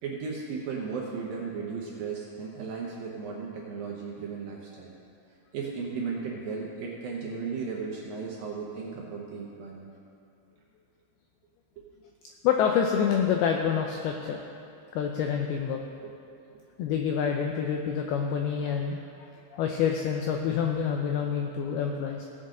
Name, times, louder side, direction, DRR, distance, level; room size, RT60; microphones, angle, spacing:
voice 1, 0.0-4.9 5.5-9.9 11.8-11.9 16.5-16.6, right 5 dB, 70° right, -3 dB, 2.3 m, -35 dB
voice 2, 12.4-14.4 14.9-15.8 16.8-22.3, left 7 dB, 90° left, 2 dB, 2.2 m, -27 dB
17.5 x 8.0 x 3.8 m, 2.6 s
omnidirectional pair, 5.2 m